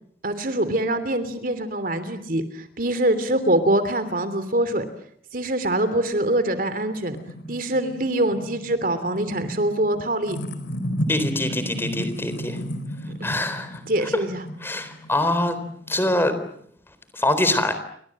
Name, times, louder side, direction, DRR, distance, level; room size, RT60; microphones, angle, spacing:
voice 1, 0.2-4.9 5.3-7.2 7.5-10.4 13.2-13.4 13.9-14.4, right 1 dB, 50° right, 12 dB, 3.1 m, -24 dB
sound 1, 6.5-16.6, equal, 90° left, 4.8 m, -34 dB
voice 2, 11.1-12.6 13.2-13.7 14.6-15.6 15.9-16.4 17.1-17.7, left 1 dB, 15° left, 11 dB, 3.9 m, -23 dB
30.0 x 25.0 x 7.6 m, 0.66 s
head